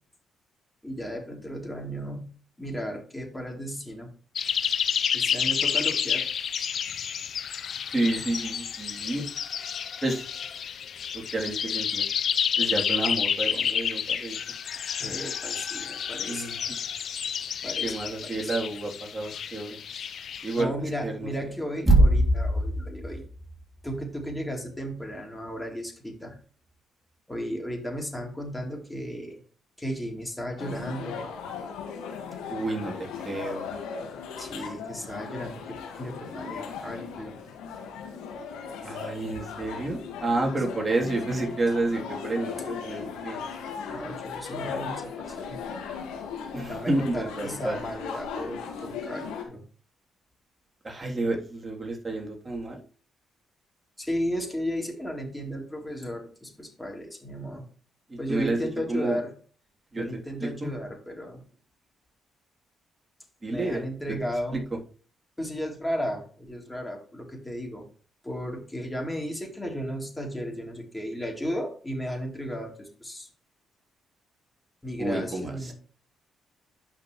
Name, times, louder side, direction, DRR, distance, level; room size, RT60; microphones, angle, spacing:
voice 1, 0.8-2.3 2.6-4.1 5.1-6.3 15.0-16.5 17.6-18.5 20.6-23.2 23.8-26.4 27.3-29.4 29.8-31.3 34.4-37.4 42.3-42.4 43.7-45.6 46.7-49.6 54.0-57.6 58.2-59.3 59.9-61.4 63.5-64.7 65.4-67.9 68.2-73.3 74.8-75.7, equal, 10° left, 0 dB, 3.8 m, -34 dB
sound 1, 4.4-20.6, left 8 dB, 65° left, 0.8 m, -30 dB
voice 2, 7.9-9.3 10.0-10.3 11.1-12.0 12.6-14.4 16.3-16.6 17.8-19.8 20.4-20.7 21.0-21.3 21.9-22.0 32.5-33.7 38.8-43.4 46.5-47.8 50.8-52.8 58.1-59.2 59.9-60.1 60.4-60.7 63.4-63.8 64.5-64.6 75.0-75.7, right 2 dB, 30° right, 0 dB, 3.4 m, -29 dB
sound 2, 30.6-49.4, left 6 dB, 85° left, 2.0 m, -37 dB
11.0 x 6.1 x 3.3 m, 0.41 s
supercardioid pair, 55°, 0 cm